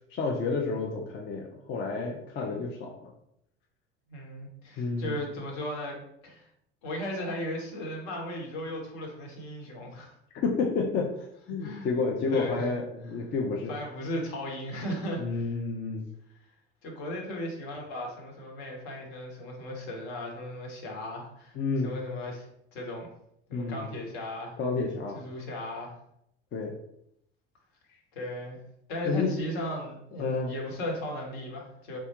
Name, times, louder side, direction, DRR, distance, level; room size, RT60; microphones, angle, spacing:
voice 1, 0.1-3.1 4.8-5.2 10.3-13.7 15.2-16.0 21.6-21.9 23.5-23.9 24.6-25.2 26.5-26.8 29.0-29.3 30.2-30.5, left 4 dB, 30° left, 0 dB, 0.5 m, -30 dB
voice 2, 2.3-2.7 4.1-6.5 6.8-10.2 11.6-11.9 12.3-12.7 13.7-15.5 16.8-21.5 21.8-23.1 23.5-24.5 25.1-25.9 28.1-28.6 28.9-32.0, left 1 dB, 60° left, 0 dB, 1.1 m, -36 dB
3.4 x 2.2 x 2.8 m, 0.75 s
figure-of-eight pair, 65°, 35 cm